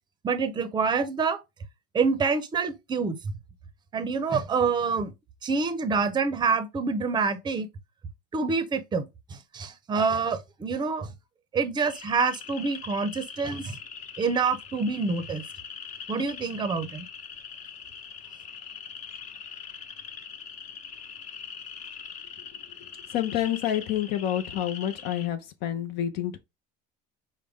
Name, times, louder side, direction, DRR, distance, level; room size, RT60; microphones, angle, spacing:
voice 1, 0.2-1.4 1.9-3.2 3.9-5.1 5.4-7.7 8.3-9.1 9.5-11.1 11.5-13.8 14.2-15.4 16.1-17.1, right 4 dB, 20° right, 0.6 m, -26 dB
sound 1, 11.8-25.3, left 7 dB, 40° left, 0.9 m, -42 dB
voice 2, 23.1-26.4, left 11 dB, 55° left, 0.6 m, -28 dB
4.9 x 2.2 x 3.4 m
cardioid pair, 130°, 20 cm